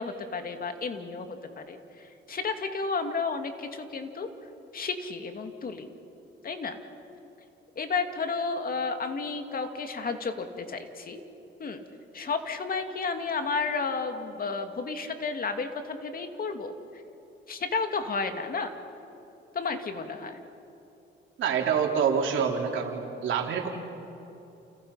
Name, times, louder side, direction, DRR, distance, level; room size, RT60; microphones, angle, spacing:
voice 1, 0.0-4.3 4.7-5.9 6.4-6.8 7.8-11.2 11.6-11.8 12.1-17.0 17.5-18.7 19.5-20.4, left 4 dB, 50° left, 6 dB, 2.5 m, -32 dB
voice 2, 21.4-23.7, right 7 dB, 75° right, 1 dB, 3.9 m, -26 dB
30.0 x 29.5 x 5.8 m, 2.9 s
cardioid pair, 90°, 20 cm